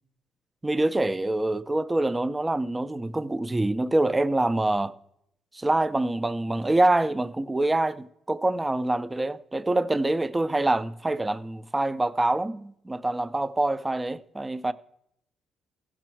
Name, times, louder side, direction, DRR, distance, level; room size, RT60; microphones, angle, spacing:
voice 1, 0.6-4.9 5.5-14.7, right 2 dB, 15° right, 0.4 m, -25 dB
14.5 x 6.1 x 4.5 m
cardioid pair, 90°, 0 cm